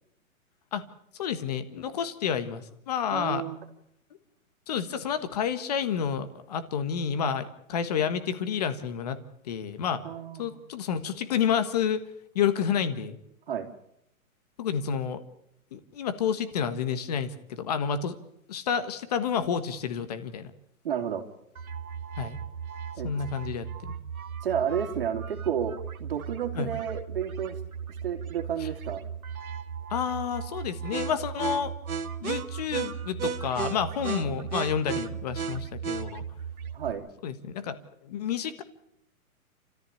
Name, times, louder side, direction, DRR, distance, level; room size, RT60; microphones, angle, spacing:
voice 1, 1.1-3.4 4.7-9.2 9.4-10.0 10.4-12.1 12.3-13.2 14.6-15.2 15.7-18.1 18.5-20.5 22.2-22.4 23.0-23.9 26.5-26.7 28.6-28.7 29.9-31.7 32.2-36.2 37.2-38.6, left 7 dB, 30° left, 11 dB, 1.5 m, -30 dB
voice 2, 3.1-3.6 10.0-10.6 13.5-13.7 20.8-21.2 23.0-23.1 24.4-27.6 28.0-29.0 34.2-34.3 36.7-37.0, right 8 dB, 40° right, 6 dB, 3.1 m, -31 dB
sound 1, 21.6-36.9, right 7 dB, 80° right, 2.0 m, -36 dB
29.0 x 14.5 x 8.5 m, 0.76 s
hypercardioid pair, 175°, 42 cm